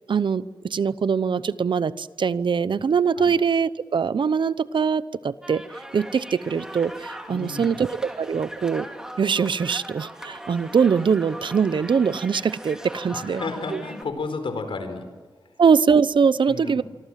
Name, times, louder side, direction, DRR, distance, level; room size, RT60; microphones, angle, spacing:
voice 1, 0.1-5.6 5.9-8.9 9.2-13.4 13.7-13.8 15.6-16.8, right 6 dB, 65° right, 16 dB, 0.8 m, -22 dB
sound 1, 5.4-14.0, right 1 dB, 5° right, 3.0 m, -40 dB
voice 2, 7.3-7.8 13.1-15.0 16.5-16.8, left 3 dB, 80° left, 8 dB, 4.7 m, -32 dB
26.5 x 24.5 x 7.5 m, 1.4 s
wide cardioid pair, 130°, 9 cm